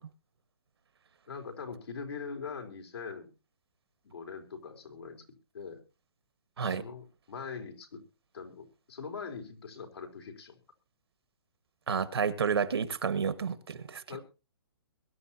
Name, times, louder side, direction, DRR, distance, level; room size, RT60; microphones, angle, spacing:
voice 1, 1.3-3.3 4.0-5.2 5.5-5.8 6.6-8.0 8.3-10.6 14.1-14.2, left 5 dB, 80° left, 4.0 m, -42 dB
voice 2, 11.9-14.0, right 6 dB, 80° right, 1.6 m, -30 dB
22.5 x 11.5 x 2.8 m
hypercardioid pair, 175°, 13 cm